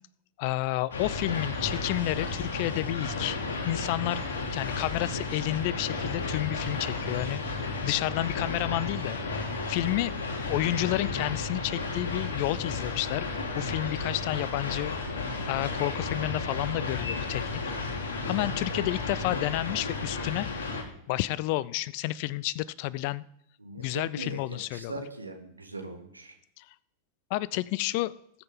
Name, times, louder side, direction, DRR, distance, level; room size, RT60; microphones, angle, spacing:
voice 1, 0.4-3.4 3.6-4.2 4.5-9.2 9.7-10.1 10.5-13.3 13.6-14.9 15.5-17.5 17.9-18.0 18.3-20.5 21.1-23.2 23.8-24.9 26.6-26.7 27.3-28.1, left 17 dB, 45° left, 21 dB, 0.5 m, -30 dB
sound 1, 0.9-20.8, left 3 dB, 60° left, 2.6 m, -33 dB
voice 2, 23.6-26.3, right 2 dB, 80° right, 4 dB, 1.7 m, -41 dB
19.5 x 8.1 x 3.8 m, 0.74 s
figure-of-eight pair, 90°, 0 cm